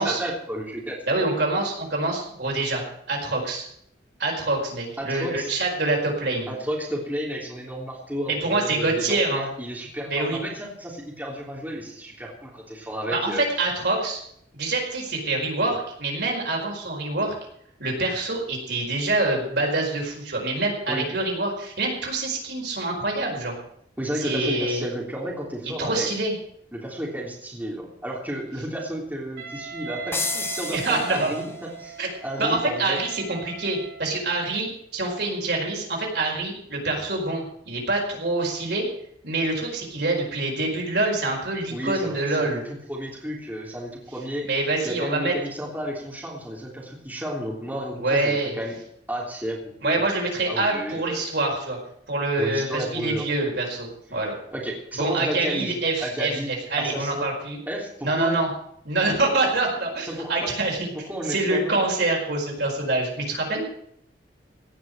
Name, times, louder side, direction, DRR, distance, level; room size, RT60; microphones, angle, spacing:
voice 1, 0.0-1.0 5.0-5.6 6.5-13.4 20.9-21.1 24.0-26.1 26.7-33.0 41.7-42.6 42.9-48.8 49.1-50.0 50.5-51.4 52.4-53.3 54.5-55.7 56.0-56.5 56.8-57.3 57.7-58.4 60.1-60.5 61.1-61.7, equal, 10° right, -3 dB, 3.4 m, -32 dB
voice 2, 1.1-2.8 3.1-3.6 4.2-6.5 8.3-9.4 10.1-10.4 13.1-14.2 14.5-17.3 17.8-23.5 24.2-24.8 25.8-26.3 30.7-31.3 32.0-32.1 32.4-38.9 39.2-42.6 44.4-45.3 48.0-48.6 49.8-51.8 52.1-54.3 55.0-57.6 58.0-58.5 58.8-60.9 61.3-63.7, right 2 dB, 70° right, 0 dB, 4.9 m, -25 dB
Wind instrument woodwind instrument, 29.4-34.4, right 6 dB, 85° right, 3.9 m, -39 dB
sound 1, 30.1-31.7, left 4 dB, 15° left, 0.6 m, -31 dB
17.5 x 6.1 x 9.3 m, 0.69 s
head